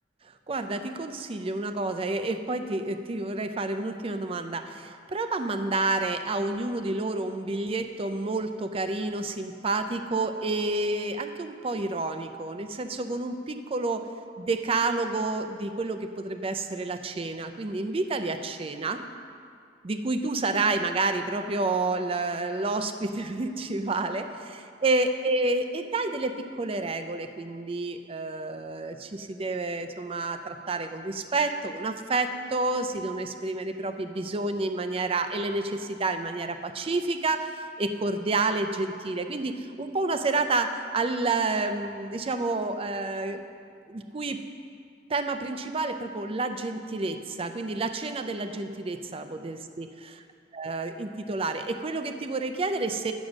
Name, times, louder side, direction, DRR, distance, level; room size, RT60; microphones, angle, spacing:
voice 1, 0.5-14.1 14.4-19.0 19.8-24.3 24.8-43.4 43.9-44.4 45.1-50.2 50.5-53.1, right 3 dB, 30° right, 8 dB, 0.5 m, -29 dB
8.8 x 6.2 x 6.3 m, 2.3 s
head